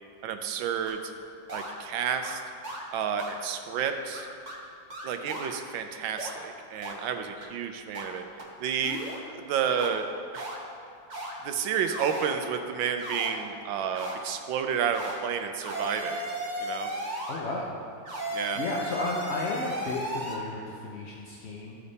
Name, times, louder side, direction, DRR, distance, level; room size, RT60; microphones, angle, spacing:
voice 1, 0.2-1.1 1.5-2.4 2.9-4.3 5.0-8.2 8.6-9.0 9.3-10.0 10.3-10.5 11.4-16.3 16.6-16.9 18.3-18.6, right 7 dB, 90° right, 7 dB, 1.4 m, -30 dB
sound 1, 0.9-1.0 1.5-1.7 2.2-2.4 2.6-2.8 3.2-3.4 3.8-3.9 4.1-4.6 4.9-5.5 6.2-6.3 6.8-6.9 7.4-7.5 7.9-8.1 8.4-8.5 8.8-9.2 9.8-9.9 10.3-10.6 11.1-11.3 11.8-12.3 13.0-13.3 13.9-14.1 14.9-15.2 15.6-17.4 18.1-20.4, right 1 dB, 30° right, 1.1 m, -35 dB
voice 2, 17.3-17.7 18.1-21.8, left 3 dB, 55° left, -3 dB, 0.7 m, -34 dB
14.0 x 5.1 x 4.1 m, 2.4 s
omnidirectional pair, 2.0 m